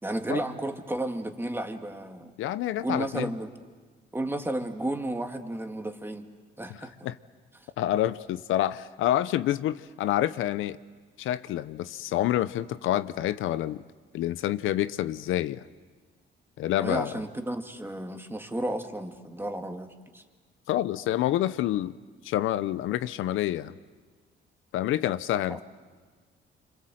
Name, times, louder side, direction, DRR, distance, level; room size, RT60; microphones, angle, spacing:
voice 1, 0.0-2.3 2.8-3.5 4.1-6.3 6.6-7.1 7.6-7.7 16.8-19.9 20.1-20.2 25.5-25.6, right 1 dB, 10° right, 5 dB, 2.2 m, -33 dB
voice 2, 2.4-3.3 7.0-7.2 7.8-10.8 11.2-13.8 14.1-15.6 16.6-17.1 20.7-22.0 22.2-23.7 24.7-25.6, left 13 dB, 85° left, 14 dB, 0.7 m, -27 dB
27.0 x 26.0 x 7.8 m, 1.5 s
cardioid pair, 90°, 20 cm